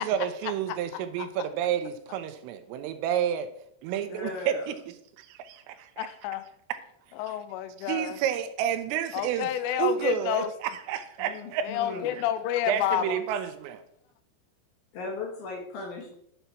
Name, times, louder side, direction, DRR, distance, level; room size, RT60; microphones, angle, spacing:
voice 1, 0.0-3.5 3.8-4.7 5.2-6.1 7.3-7.4 7.8-9.5 9.8-12.0 12.7-13.8, right 9 dB, 90° right, 9 dB, 3.5 m, -30 dB
voice 2, 4.1-4.7 11.2-12.2 14.9-16.1, left 3 dB, 60° left, 0 dB, 3.1 m, -37 dB
voice 3, 6.0-6.4 7.2-8.2 9.1-10.5 11.6-13.2, left 11 dB, 80° left, 12 dB, 3.1 m, -29 dB
11.5 x 6.8 x 4.5 m, 0.70 s
omnidirectional pair, 5.7 m